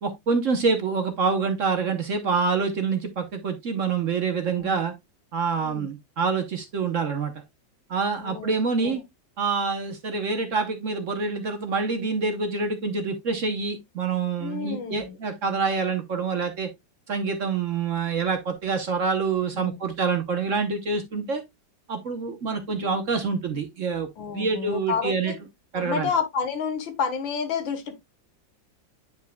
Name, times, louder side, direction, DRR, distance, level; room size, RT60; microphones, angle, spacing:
voice 1, 0.0-4.9 5.3-7.3 7.9-9.0 9.4-16.7 17.1-21.4 21.9-24.1 24.3-25.3 25.7-26.1, right 4 dB, 50° right, 1.1 m, -26 dB
voice 2, 5.6-5.9 8.2-8.5 8.8-9.0 14.4-15.2 19.5-19.8 24.2-25.4 25.7-28.0, left 6 dB, 85° left, 2.0 m, -30 dB
9.3 x 5.4 x 2.2 m
omnidirectional pair, 2.1 m